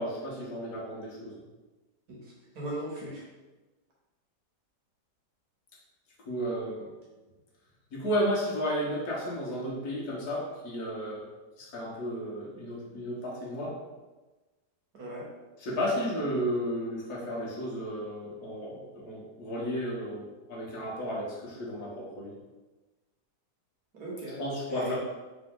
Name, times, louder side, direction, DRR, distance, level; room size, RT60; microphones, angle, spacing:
voice 1, 0.0-1.4 6.2-6.9 7.9-11.2 11.6-13.8 15.6-22.3 24.4-25.0, equal, 65° left, -5 dB, 1.7 m, -33 dB
voice 2, 2.1-3.2 14.9-15.3 23.9-24.4 24.7-25.0, right 1 dB, 65° right, -4 dB, 1.6 m, -38 dB
4.1 x 3.0 x 3.7 m, 1.2 s
omnidirectional pair, 1.8 m